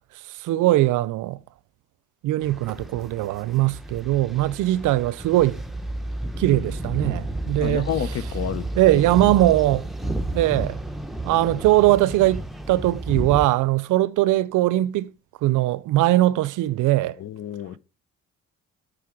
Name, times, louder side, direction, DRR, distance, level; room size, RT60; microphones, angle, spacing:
voice 1, 0.4-1.4 2.2-5.6 6.4-7.9 8.8-9.9 10.3-10.8 11.2-15.1 15.4-17.1, right 16 dB, 85° right, 0.5 m, -20 dB
sound 1, 2.4-13.5, right 1 dB, ahead, 0.8 m, -32 dB
voice 2, 7.6-8.6 17.2-17.8, left 9 dB, 55° left, 0.7 m, -29 dB
8.6 x 5.0 x 4.7 m
cardioid pair, 95°, 30 cm